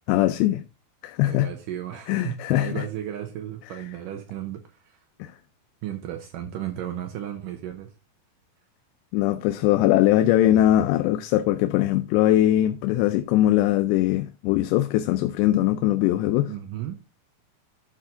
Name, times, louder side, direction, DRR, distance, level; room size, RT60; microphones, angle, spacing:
voice 1, 0.1-0.6 1.0-1.5 2.1-2.8 3.7-3.8 5.2-5.3 9.1-16.5, left 14 dB, 85° left, 2.8 m, -21 dB
voice 2, 1.2-5.0 5.8-7.9 16.5-17.0, right 11 dB, 80° right, 1.9 m, -34 dB
12.5 x 4.5 x 3.7 m
omnidirectional pair, 5.0 m